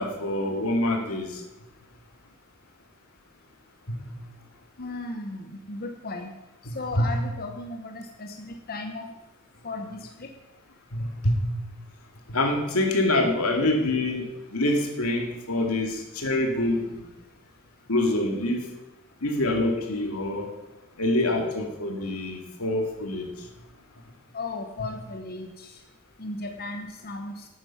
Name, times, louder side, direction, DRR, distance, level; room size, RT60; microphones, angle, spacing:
voice 1, 0.0-1.4 3.9-4.0 6.7-7.1 10.9-11.4 12.3-17.1 17.9-18.7 19.2-20.5 21.0-23.5, left 1 dB, 90° left, 2 dB, 2.2 m, -26 dB
voice 2, 4.8-6.3 6.7-9.1 9.6-10.3 13.6-13.7 24.3-25.7 26.2-27.5, left 2 dB, 45° left, 4 dB, 1.0 m, -36 dB
11.0 x 9.4 x 5.8 m, 0.99 s
head